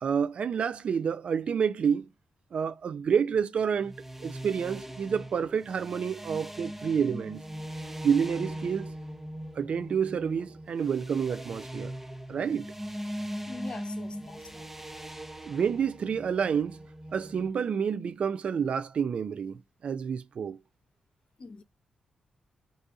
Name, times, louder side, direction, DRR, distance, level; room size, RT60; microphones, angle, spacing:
voice 1, 0.0-2.1 2.5-3.9 4.2-7.4 8.0-8.9 9.6-11.9 12.3-12.7 15.5-16.8 17.1-20.6, right 7 dB, 60° right, 0.4 m, -29 dB
sound 1, 3.8-17.5, equal, 10° right, 0.6 m, -40 dB
voice 2, 13.5-14.7 21.4-21.6, left 3 dB, 50° left, 0.8 m, -43 dB
2.7 x 2.6 x 3.6 m
supercardioid pair, 40°, 2 cm